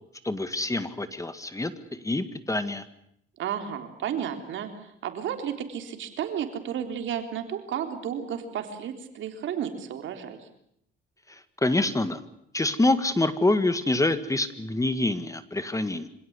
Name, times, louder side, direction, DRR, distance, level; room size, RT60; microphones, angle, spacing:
voice 1, 0.2-2.8 11.3-12.2 12.5-16.1, left 2 dB, 15° left, 12 dB, 1.9 m, -26 dB
voice 2, 3.4-10.5, right 9 dB, 75° right, 6 dB, 3.8 m, -33 dB
25.5 x 17.0 x 9.7 m, 0.74 s
cardioid pair, 85°, 20 cm